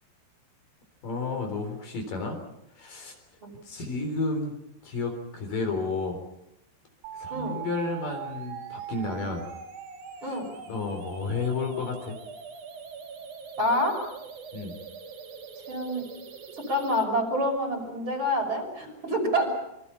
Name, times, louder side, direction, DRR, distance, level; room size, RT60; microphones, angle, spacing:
voice 1, 1.0-2.4 2.8-3.1 3.6-4.6 4.8-6.2 7.1-9.5 10.2-10.4 10.7-12.2 14.5-14.8, left 3 dB, 55° left, 4 dB, 5.4 m, -31 dB
sound 1, 7.0-17.0, right 7 dB, 50° right, 3.2 m, -42 dB
voice 2, 13.6-14.0 15.7-16.0 16.6-19.5, equal, 30° right, 2 dB, 6.5 m, -27 dB
28.0 x 25.5 x 5.7 m, 0.83 s
omnidirectional pair, 4.8 m